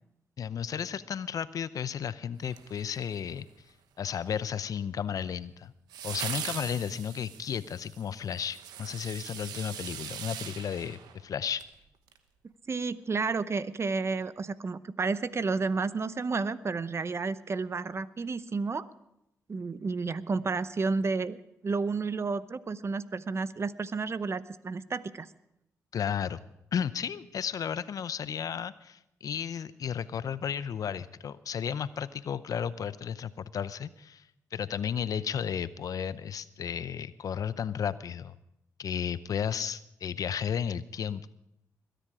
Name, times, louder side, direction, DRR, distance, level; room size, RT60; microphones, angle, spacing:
voice 1, 0.4-3.5 4.0-5.7 6.0-11.6 25.9-26.4 26.7-38.4 38.8-41.3, left 8 dB, 65° left, 16 dB, 0.6 m, -33 dB
sound 1, 2.5-3.4 5.9-11.7 12.1-12.2, right 9 dB, 85° right, 1.0 m, -41 dB
voice 2, 12.7-18.8 19.5-21.4 21.6-25.3, right 4 dB, 40° right, 16 dB, 0.8 m, -31 dB
21.5 x 10.0 x 4.9 m, 0.82 s
supercardioid pair, 50°, 7 cm